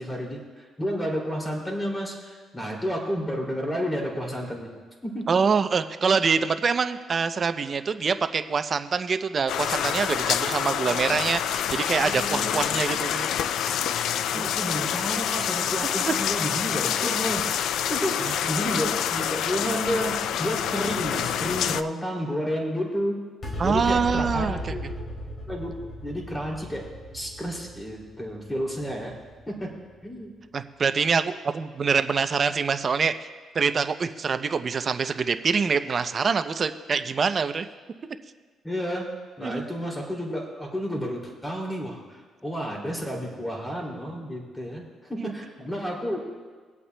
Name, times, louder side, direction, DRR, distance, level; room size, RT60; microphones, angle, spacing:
voice 1, 0.0-4.7 5.0-5.3 12.0-12.8 14.4-17.5 17.9-23.2 23.6-24.9 25.5-25.8 26.0-26.8 27.1-29.1 29.5-29.7 30.0-30.3 38.6-39.1 39.4-46.2, equal, 10° left, -1 dB, 2.7 m, -31 dB
voice 2, 5.3-13.3 14.3-14.5 16.0-16.1 18.2-18.4 23.6-24.7 30.5-33.1 33.5-37.7 39.4-39.7 45.2-45.3, right 5 dB, 45° right, 10 dB, 0.5 m, -25 dB
sound 1, 9.5-21.8, left 9 dB, 80° left, 0.3 m, -27 dB
sound 2, 23.4-30.1, equal, 45° left, 3.5 m, -36 dB
25.0 x 8.4 x 2.2 m, 1.5 s
cardioid pair, 90°, 0 cm